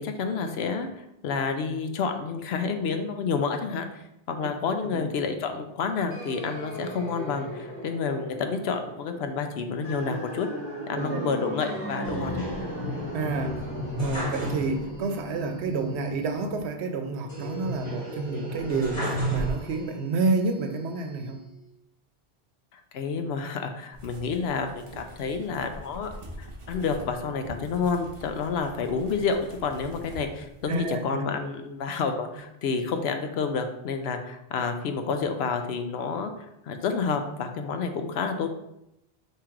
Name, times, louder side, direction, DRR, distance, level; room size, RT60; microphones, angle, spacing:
voice 1, 0.0-10.5 10.9-12.4 22.7-26.1 26.4-36.3 36.7-38.5, left 5 dB, 75° left, 6 dB, 0.8 m, -29 dB
sound 1, 6.1-16.6, equal, 10° left, 1.6 m, -37 dB
voice 2, 11.0-11.4 12.1-12.5 13.1-13.6 14.0-21.4 30.7-31.2, right 3 dB, 90° right, 5 dB, 0.9 m, -29 dB
sound 2, 12.0-15.1 15.4-15.5 17.3-20.0 20.6-21.4, right 1 dB, 40° left, 1.9 m, -33 dB
sound 3, 23.9-30.9, equal, 30° right, 0.8 m, -44 dB
3.6 x 2.9 x 4.5 m, 0.84 s
omnidirectional pair, 1.1 m